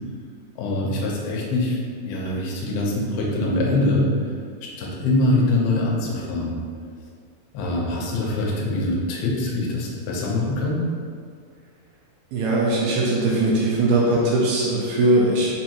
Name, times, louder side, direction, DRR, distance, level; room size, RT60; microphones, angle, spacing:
voice 1, 0.6-4.3 4.6-6.6 7.5-10.8, left 2 dB, 80° left, -2 dB, 2.5 m, -23 dB
voice 2, 12.3-15.5, right 2 dB, 80° right, -4 dB, 2.2 m, -20 dB
6.1 x 2.6 x 2.8 m, 2.1 s
omnidirectional pair, 4.6 m